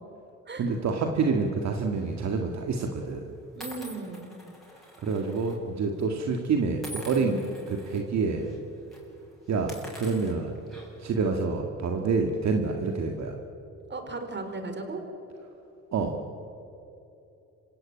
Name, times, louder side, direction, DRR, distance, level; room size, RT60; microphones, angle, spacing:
voice 1, 0.6-3.2 5.0-7.4 7.7-8.5 9.5-10.5 11.0-13.4 15.9-16.2, right 4 dB, 65° right, 3 dB, 2.1 m, -27 dB
sound 1, 1.9-2.2 3.0-3.1 3.6-5.6 5.8-6.0 6.8-8.0 8.4-8.6 8.9-9.0 9.5-11.1, equal, ahead, 7.5 m, -45 dB
voice 2, 3.6-4.4 7.1-7.4 13.9-15.0, right 3 dB, 35° right, 6 dB, 4.3 m, -37 dB
27.0 x 16.5 x 9.0 m, 2.9 s
cardioid pair, 90°, 30 cm